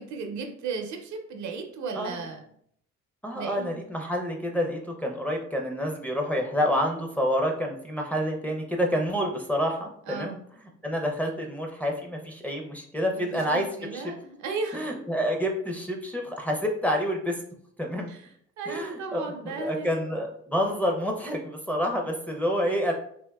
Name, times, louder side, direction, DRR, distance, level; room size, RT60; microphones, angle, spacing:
voice 1, 0.0-2.4 3.3-3.8 10.1-10.4 13.1-14.9 18.1-18.3 18.6-20.0, right 4 dB, 70° right, 4 dB, 0.6 m, -35 dB
voice 2, 3.2-10.3 10.8-13.7 13.9-14.0 14.7-17.4 17.8-18.1 18.7-22.9, equal, 5° left, 1 dB, 0.5 m, -28 dB
3.5 x 2.5 x 2.3 m, 0.66 s
cardioid pair, 90°, 30 cm